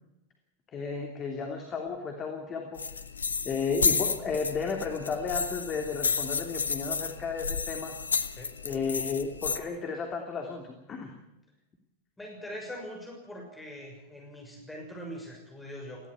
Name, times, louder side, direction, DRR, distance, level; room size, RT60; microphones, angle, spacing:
voice 1, 0.7-2.9 3.4-8.0 8.6-11.2, left 5 dB, 25° left, 3 dB, 2.9 m, -33 dB
sound 1, 2.8-9.6, left 5 dB, 75° left, 1.1 m, -31 dB
voice 2, 12.2-16.1, equal, 10° left, 0 dB, 6.5 m, -42 dB
20.0 x 16.0 x 8.3 m, 0.94 s
figure-of-eight pair, 90°, 0 cm